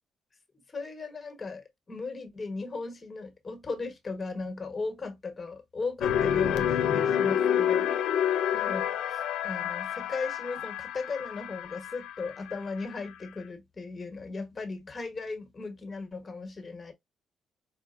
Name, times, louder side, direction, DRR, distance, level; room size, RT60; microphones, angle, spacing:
voice 1, 0.7-7.9 8.5-16.9, left 3 dB, 30° left, 1.3 m, -37 dB
sound 1, 6.0-13.0, left 9 dB, 85° left, 0.6 m, -28 dB
5.0 x 2.4 x 2.4 m
cardioid pair, 90°, 0 cm